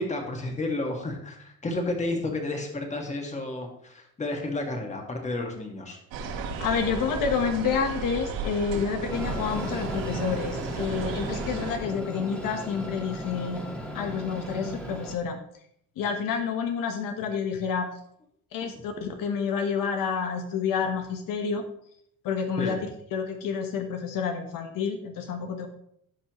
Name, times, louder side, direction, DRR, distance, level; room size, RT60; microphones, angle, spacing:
voice 1, 0.0-6.0 22.6-22.8, left 2 dB, 20° left, 2 dB, 1.8 m, -31 dB
sound 1, 6.1-11.8, right 4 dB, 90° right, 3.9 m, -34 dB
voice 2, 6.6-13.6 13.9-15.4 16.0-17.9 18.5-21.6 22.2-25.7, left 6 dB, 70° left, 5 dB, 1.2 m, -29 dB
Train, 9.1-15.2, equal, 5° left, 1.6 m, -36 dB
15.5 x 5.6 x 3.1 m, 0.70 s
cardioid pair, 140°, 35 cm